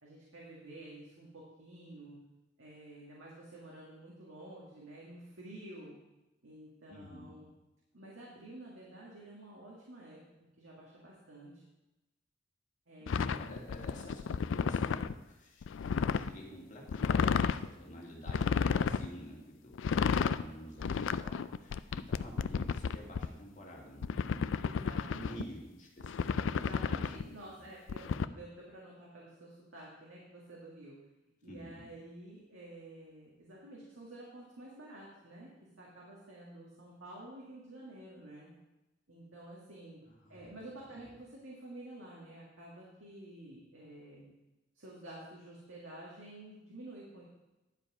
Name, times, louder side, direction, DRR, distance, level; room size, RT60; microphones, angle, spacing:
voice 1, 0.0-2.2 2.6-6.0 6.4-7.5 7.9-10.2 10.6-11.6 12.9-13.4 24.6-25.4 26.5-31.0 31.4-38.5 39.1-40.0 40.3-44.3 44.7-47.2, right 1 dB, 85° right, -4 dB, 2.0 m, -50 dB
voice 2, 6.9-7.3 13.1-24.5 25.1-27.4 31.5-31.7 40.0-40.6, equal, 40° left, -2 dB, 2.4 m, -49 dB
sound 1, 13.1-15.1 15.6-16.3 16.9-17.7 18.3-19.1 19.7-20.4 20.8-23.3 24.0-25.4 26.0-27.2 27.9-28.2, left 6 dB, 70° left, 0.4 m, -32 dB
10.5 x 7.5 x 4.9 m, 1.0 s
head